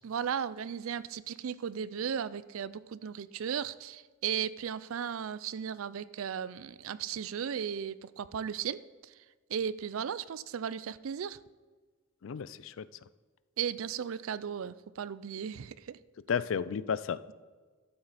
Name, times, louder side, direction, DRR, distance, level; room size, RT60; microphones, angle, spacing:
voice 1, 0.0-8.8 9.5-11.4 13.6-16.0, right 8 dB, 75° right, 17 dB, 0.4 m, -36 dB
voice 2, 12.2-12.8 16.3-17.3, left 7 dB, 65° left, 16 dB, 0.4 m, -33 dB
12.5 x 7.7 x 4.1 m, 1.4 s
head